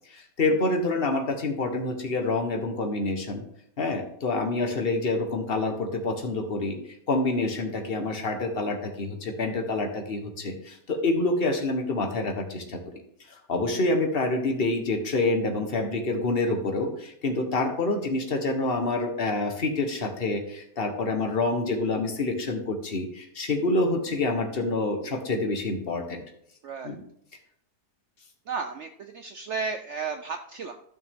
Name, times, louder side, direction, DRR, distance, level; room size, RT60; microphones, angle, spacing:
voice 1, 0.1-3.4 3.8-6.8 7.1-12.8 13.3-26.2 26.8-27.0, left 2 dB, 40° left, 4 dB, 1.3 m, -27 dB
voice 2, 26.6-26.9 28.5-30.7, right 5 dB, 70° right, 7 dB, 0.6 m, -33 dB
13.5 x 5.9 x 3.6 m, 0.71 s
omnidirectional pair, 1.8 m